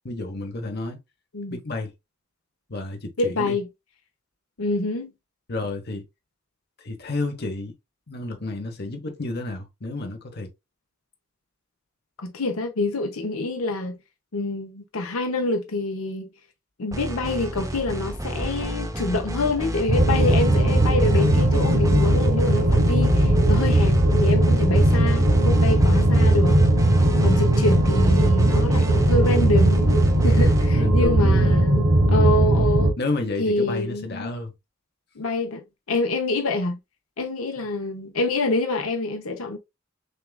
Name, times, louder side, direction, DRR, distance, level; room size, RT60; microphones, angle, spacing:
voice 1, 0.0-1.0 1.5-1.9 2.7-3.6 5.5-6.0 6.8-7.7 8.1-10.5 30.7-31.6 33.0-34.5 37.6-37.7, left 2 dB, 50° left, 0.9 m, -30 dB
voice 2, 3.2-3.6 4.6-5.1 12.2-14.0 14.3-16.3 16.8-26.6 27.2-29.9 30.2-32.9 33.4-34.4 35.2-35.6 35.9-36.8 37.2-39.6, left 2 dB, 80° left, 0.8 m, -26 dB
sound 1, 16.9-31.1, right 1 dB, 15° right, 0.5 m, -31 dB
sound 2, 19.9-32.9, right 1 dB, 45° right, 1.0 m, -18 dB
6.6 x 2.4 x 2.3 m
head